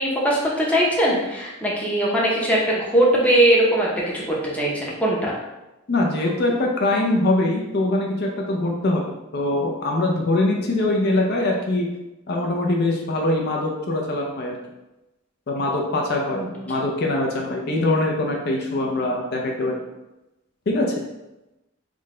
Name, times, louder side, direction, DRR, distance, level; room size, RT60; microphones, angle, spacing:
voice 1, 0.0-5.4 16.3-16.5, right 1 dB, 5° left, -4 dB, 0.6 m, -20 dB
voice 2, 5.9-9.0 9.3-11.9 12.3-14.5 15.5-19.7 20.7-20.9, left 2 dB, 50° left, 0 dB, 0.5 m, -23 dB
3.7 x 2.2 x 3.6 m, 0.98 s
head